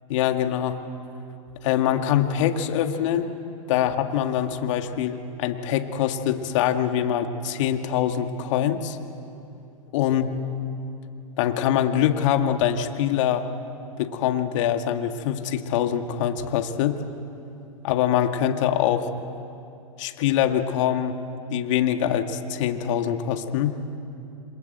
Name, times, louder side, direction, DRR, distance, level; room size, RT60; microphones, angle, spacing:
voice 1, 0.1-0.8 1.6-3.3 3.7-9.0 9.9-10.3 11.4-13.5 14.0-17.0 17.8-19.1 20.0-21.1 21.5-23.8, left 10 dB, 60° left, 6 dB, 2.0 m, -24 dB
27.5 x 26.5 x 8.0 m, 2.7 s
hypercardioid pair, 110°, 18 cm